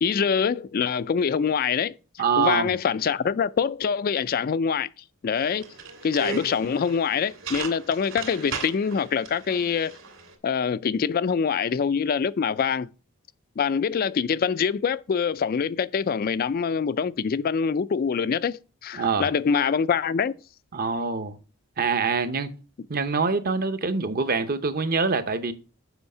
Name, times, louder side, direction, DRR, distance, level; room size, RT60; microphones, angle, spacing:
voice 1, 0.0-2.0 2.4-4.9 5.2-5.7 6.0-10.0 10.4-12.9 13.6-20.3, left 6 dB, 40° left, 0.3 m, -24 dB
voice 2, 2.2-2.7 18.9-19.3 20.7-21.4 21.8-22.5 22.9-25.5, right 4 dB, 40° right, 0.8 m, -25 dB
sound 1, 5.4-10.3, right 5 dB, 55° right, 2.4 m, -37 dB
8.0 x 5.6 x 5.5 m
head